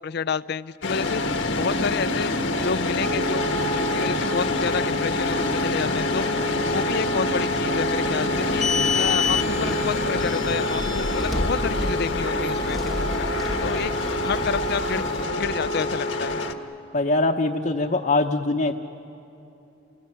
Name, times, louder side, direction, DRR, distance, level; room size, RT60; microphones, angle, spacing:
voice 1, 0.0-2.3 2.6-13.3 13.6-13.9 14.2-16.4, left 5 dB, 60° left, 16 dB, 0.5 m, -30 dB
sound 1, 0.8-16.5, left 2 dB, 85° left, 1.5 m, -27 dB
Wind instrument woodwind instrument, 3.0-16.5, equal, 70° right, 2.3 m, -31 dB
sound 2, 8.3-15.2, left 3 dB, ahead, 1.1 m, -29 dB
voice 2, 16.9-18.7, left 2 dB, 45° left, 0 dB, 0.9 m, -22 dB
29.5 x 19.5 x 9.7 m, 2.9 s
head